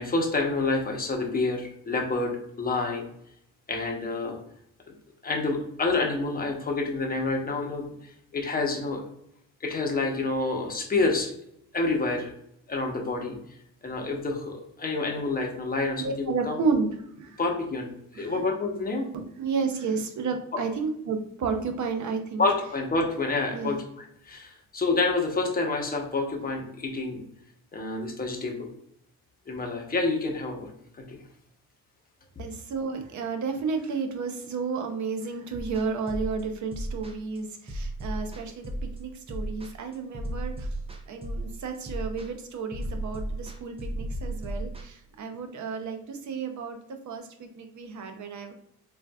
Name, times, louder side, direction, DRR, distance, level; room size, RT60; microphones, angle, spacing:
voice 1, 0.0-3.1 3.7-4.4 5.2-7.9 8.3-9.0 9.6-11.3 11.7-12.3 12.7-13.4 13.8-16.6 17.4-19.1 22.4-23.8 24.3-27.2 27.7-28.7 29.5-31.2 32.4-32.5, left 3 dB, 25° left, 2 dB, 0.9 m, -28 dB
voice 2, 16.0-17.4 18.1-18.5 19.1-22.4 23.5-23.8 32.4-40.8 41.1-48.5, right 4 dB, 50° right, 5 dB, 0.7 m, -32 dB
sound 1, 35.6-44.8, right 1 dB, 15° right, 0.5 m, -34 dB
3.8 x 2.5 x 2.3 m, 0.72 s
cardioid pair, 80°, 36 cm